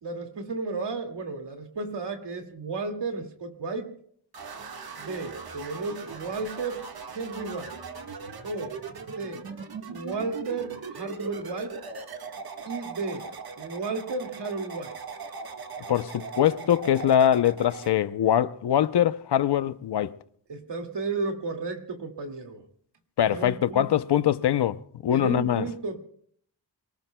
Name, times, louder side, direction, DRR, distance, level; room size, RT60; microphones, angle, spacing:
voice 1, 0.0-3.9 5.0-7.8 8.4-8.8 9.1-9.5 9.9-11.8 12.7-13.3 13.6-15.0 20.5-22.7 23.3-24.0 25.1-26.0, right 3 dB, 80° right, 2.4 m, -33 dB
sound 1, 4.3-17.9, right 5 dB, 60° right, 1.7 m, -40 dB
voice 2, 15.9-20.1 23.2-25.6, left 10 dB, 70° left, 0.8 m, -23 dB
27.5 x 19.0 x 2.3 m
cardioid pair, 80°, 42 cm